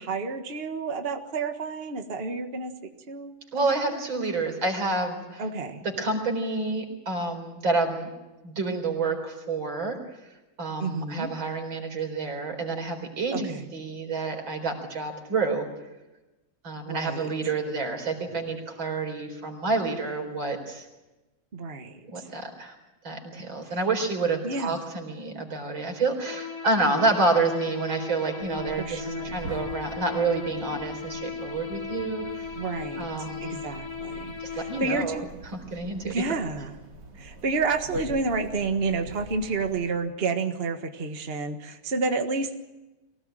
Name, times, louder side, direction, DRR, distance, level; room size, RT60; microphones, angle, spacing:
voice 1, 0.0-3.3 3.6-4.0 5.4-5.8 10.8-11.3 13.3-13.7 16.8-17.3 21.5-22.3 24.4-24.9 28.8-29.4 32.5-35.3 36.0-36.8 37.2-42.6, right 4 dB, 30° right, 5 dB, 1.7 m, -30 dB
voice 2, 3.5-5.4 5.8-8.1 8.4-10.0 10.6-15.7 16.6-20.8 22.1-22.7 23.0-32.5 33.0-33.5 34.4-35.2 35.5-36.1, right 3 dB, 85° right, 4 dB, 5.0 m, -28 dB
sound 1, 26.2-35.0, left 5 dB, 20° left, 0.8 m, -37 dB
sound 2, 28.4-39.9, right 2 dB, 60° right, 3.2 m, -45 dB
24.0 x 17.5 x 9.0 m, 1.0 s
omnidirectional pair, 2.1 m